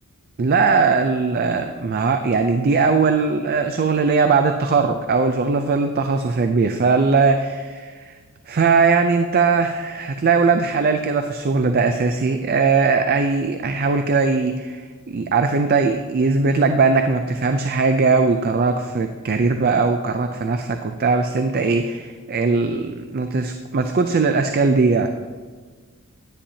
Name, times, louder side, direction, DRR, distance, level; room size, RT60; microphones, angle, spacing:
voice 1, 0.4-8.1 8.5-25.1, right 4 dB, 45° right, 7 dB, 0.4 m, -19 dB
10.0 x 10.0 x 2.8 m, 1.5 s
head